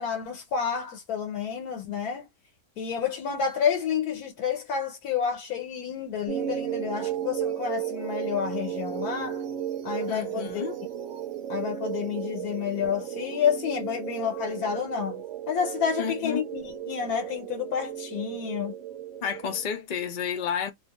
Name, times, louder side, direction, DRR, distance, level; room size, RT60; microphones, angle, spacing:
voice 1, 0.0-2.3 2.8-9.4 9.8-10.7 11.5-18.7, left 7 dB, 80° left, 1.3 m, -30 dB
sound 1, 6.3-19.7, right 10 dB, 65° right, 0.8 m, -34 dB
voice 2, 10.1-10.8 16.0-16.5 19.2-20.7, left 7 dB, 55° left, 0.5 m, -31 dB
2.7 x 2.1 x 2.9 m
omnidirectional pair, 1.6 m